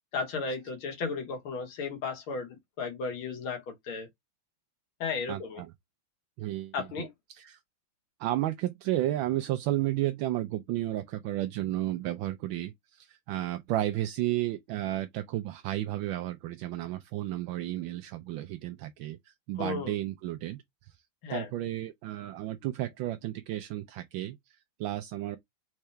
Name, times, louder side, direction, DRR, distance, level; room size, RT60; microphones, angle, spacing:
voice 1, 0.1-4.1 5.0-5.6 6.7-7.1 19.6-19.9 21.2-21.5, left 4 dB, 80° left, 2.1 m, -34 dB
voice 2, 5.3-5.7 6.4-7.6 8.2-20.6 21.3-25.4, right 14 dB, 75° right, 1.3 m, -33 dB
4.5 x 3.7 x 3.2 m
omnidirectional pair, 2.3 m